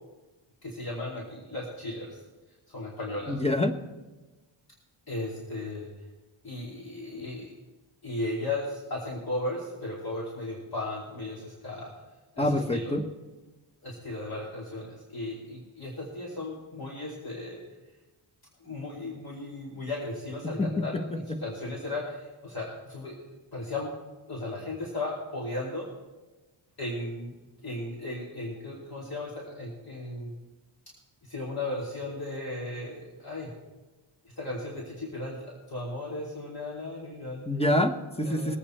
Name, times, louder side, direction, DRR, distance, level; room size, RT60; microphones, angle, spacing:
voice 1, 0.6-2.2 2.7-3.4 5.1-5.9 6.4-7.5 8.0-11.9 12.3-12.9 13.8-17.6 18.6-21.0 21.4-23.1 23.5-23.9 24.3-25.9 26.8-27.3 27.6-30.3 31.3-33.5 34.4-37.5 38.2-38.6, left 2 dB, 45° left, -4 dB, 2.8 m, -36 dB
voice 2, 3.3-3.7 12.4-13.0 20.4-21.4 37.5-38.6, left 1 dB, 10° left, 6 dB, 1.1 m, -27 dB
21.0 x 8.5 x 4.4 m, 1.2 s
wide cardioid pair, 100°, 50 cm